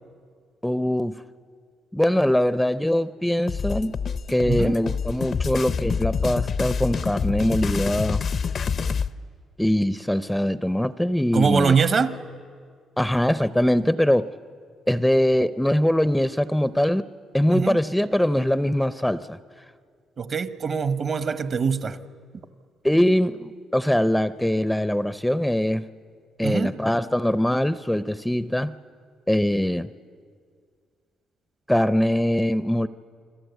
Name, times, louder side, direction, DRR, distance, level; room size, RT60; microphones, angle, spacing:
voice 1, 0.6-1.2 1.9-3.9 4.3-8.2 9.6-11.7 13.0-14.3 14.9-17.0 17.3-19.4 22.8-25.9 26.4-28.7 29.3-29.9 31.7-32.9, left 1 dB, 5° left, 0.6 m, -22 dB
sound 1, 3.5-9.1, left 6 dB, 50° left, 0.6 m, -27 dB
voice 2, 11.3-12.1 17.5-17.8 20.2-22.0 26.4-26.7, right 5 dB, 50° right, 1.0 m, -23 dB
28.5 x 21.0 x 8.1 m
cardioid pair, 90°, 0 cm